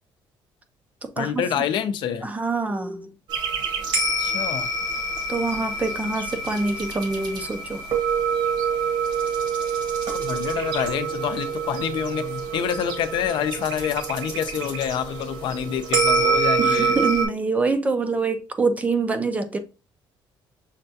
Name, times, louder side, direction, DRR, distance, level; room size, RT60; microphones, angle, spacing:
voice 1, 1.2-2.3 4.2-4.7 10.2-16.9, left 9 dB, 60° left, 0.5 m, -27 dB
voice 2, 2.2-3.1 5.3-7.8 16.6-19.6, right 3 dB, 15° right, 0.4 m, -25 dB
sound 1, 3.3-17.3, right 4 dB, 60° right, 1.1 m, -26 dB
6.4 x 2.2 x 2.6 m
cardioid pair, 165°, 9 cm